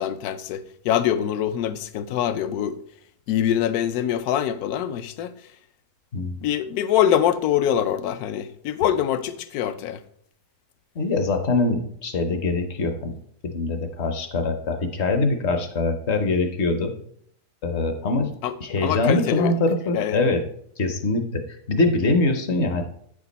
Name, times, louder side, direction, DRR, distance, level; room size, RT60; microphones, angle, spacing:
voice 1, 0.0-2.8 3.3-5.3 6.4-10.0 18.4-18.6 18.8-19.5 19.9-20.2, left 10 dB, 75° left, 1.0 m, -24 dB
voice 2, 10.9-13.1 13.4-16.9 17.6-18.3 18.6-20.4 20.8-22.8, left 2 dB, 50° left, 0.9 m, -23 dB
9.1 x 5.2 x 4.0 m
omnidirectional pair, 1.7 m